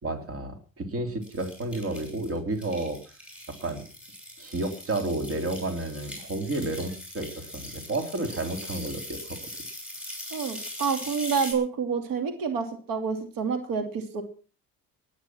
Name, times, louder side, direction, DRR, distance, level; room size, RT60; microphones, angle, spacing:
voice 1, 0.0-3.0 3.6-3.9 4.4-9.4, right 2 dB, 45° right, 6 dB, 3.4 m, -31 dB
sound 1, 1.2-11.5, left 1 dB, 5° right, 6.8 m, -41 dB
voice 2, 10.3-14.2, right 6 dB, 80° right, 7 dB, 2.8 m, -28 dB
19.0 x 10.5 x 6.0 m, 0.39 s
cardioid pair, 135°, 33 cm